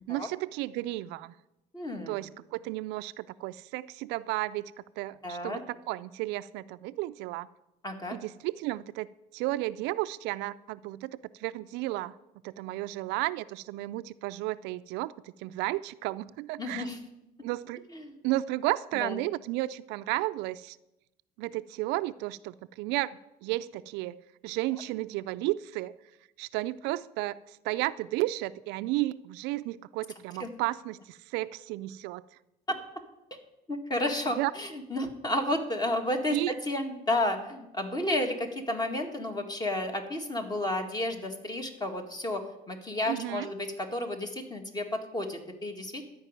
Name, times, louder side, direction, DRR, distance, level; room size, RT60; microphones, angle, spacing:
voice 1, 0.1-1.3 2.1-7.5 8.1-9.1 9.3-12.1 12.4-16.9 17.4-17.9 18.2-20.8 21.4-25.9 26.4-32.2 34.4-34.5 36.3-36.5 43.1-43.5, right 17 dB, 80° right, 15 dB, 0.4 m, -33 dB
voice 2, 1.7-2.1 5.2-5.6 7.8-8.2 16.6-17.0 17.9-18.1 18.9-19.2 30.4-30.5 32.7-32.8 33.3-33.4 33.7-46.0, left 1 dB, 25° left, 5 dB, 1.9 m, -32 dB
12.5 x 5.3 x 9.0 m, 0.92 s
cardioid pair, 100°, 17 cm